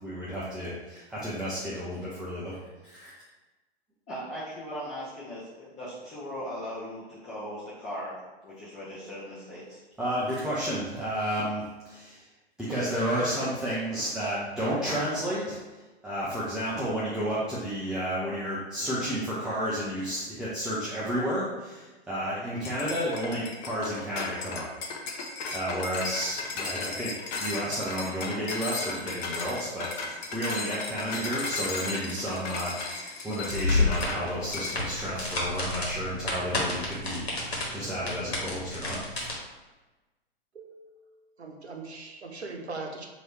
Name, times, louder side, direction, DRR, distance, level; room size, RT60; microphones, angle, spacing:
voice 1, 0.0-2.6 2.8-3.1 10.0-12.3 12.7-15.6 16.0-24.7 25.5-27.1 27.4-39.3, equal, ahead, -9 dB, 0.6 m, -31 dB
voice 2, 4.1-9.8, equal, 20° left, -10 dB, 1.0 m, -39 dB
sound 1, 22.6-34.2 34.5-34.8, left 3 dB, 45° left, 0.7 m, -35 dB
sound 2, 33.5-39.3, left 2 dB, 70° left, 1.4 m, -30 dB
voice 3, 40.5-41.0 41.4-43.1, right 3 dB, 85° right, 2 dB, 0.8 m, -40 dB
3.1 x 2.9 x 4.3 m, 1.2 s
figure-of-eight pair, 110°, 32 cm